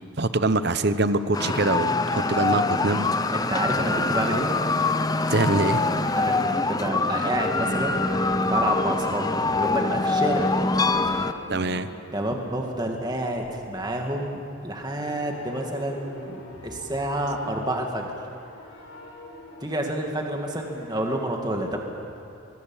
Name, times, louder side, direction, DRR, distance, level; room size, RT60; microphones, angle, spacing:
voice 1, 0.2-3.1 5.3-5.8 11.5-11.9, right 2 dB, 50° right, 11 dB, 0.9 m, -24 dB
sound 1, 1.3-11.3, left 3 dB, 20° left, 0.6 m, -24 dB
voice 2, 3.3-4.5 6.1-9.3 9.5-10.5 12.1-18.1 19.6-21.8, right 1 dB, 20° right, 1 dB, 2.3 m, -29 dB
sound 2, 3.6-9.5 10.0-13.9 14.7-21.2, left 1 dB, 85° left, 4.4 m, -44 dB
24.5 x 21.5 x 7.4 m, 2.6 s
head